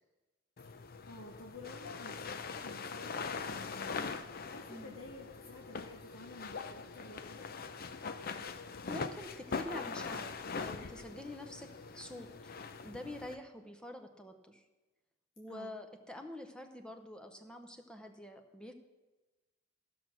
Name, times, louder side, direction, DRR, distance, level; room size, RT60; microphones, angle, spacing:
sound 1, 0.6-13.3, left 5 dB, 50° left, 0.5 m, -42 dB
voice 1, 1.0-7.5 15.5-15.8, left 2 dB, 75° left, -1 dB, 1.2 m, -52 dB
voice 2, 8.9-10.3 10.6-11.7 11.9-12.5 12.8-14.6 15.4-18.7, left 1 dB, 5° left, 6 dB, 0.7 m, -46 dB
14.5 x 6.2 x 6.3 m, 1.1 s
head